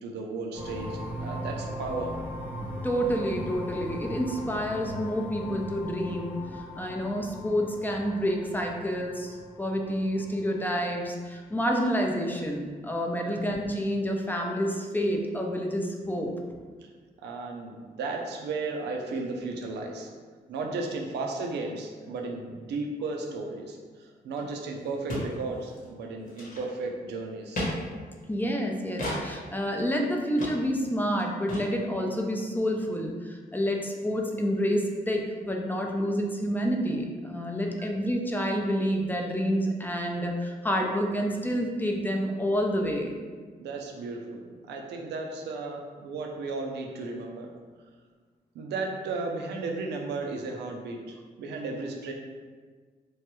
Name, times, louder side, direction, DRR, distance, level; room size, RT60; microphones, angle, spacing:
voice 1, 0.0-2.4 13.2-13.5 16.8-16.9 17.2-20.1 20.5-27.6 37.8-37.9 43.6-47.5 48.5-52.1, right 3 dB, 90° right, 2 dB, 0.4 m, -35 dB
sound 1, 0.5-11.1, left 1 dB, 10° right, 1.0 m, -39 dB
voice 2, 2.8-16.3 28.3-43.2, equal, 10° left, 0 dB, 0.4 m, -28 dB
sound 2, 24.4-24.5 24.7-24.8 25.1-25.3 25.6-25.9 26.3-26.9 27.5-27.7 29.0-29.2 29.7-29.8 30.4-30.5 30.8-30.9 31.1-31.2 31.5-31.6, left 1 dB, 55° left, 1.0 m, -33 dB
3.0 x 2.2 x 2.9 m, 1.5 s
cardioid pair, 70°, 17 cm